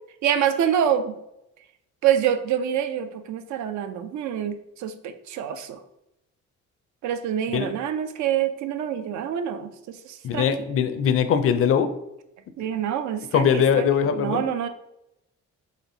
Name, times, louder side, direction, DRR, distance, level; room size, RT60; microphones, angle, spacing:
voice 1, 0.2-1.2 2.0-5.8 7.0-10.5 12.6-14.7, right 9 dB, 70° right, 10 dB, 0.5 m, -26 dB
voice 2, 10.2-11.9 13.3-14.4, left 7 dB, 50° left, 9 dB, 0.4 m, -21 dB
4.2 x 2.8 x 2.6 m, 0.86 s
cardioid pair, 90°, 30 cm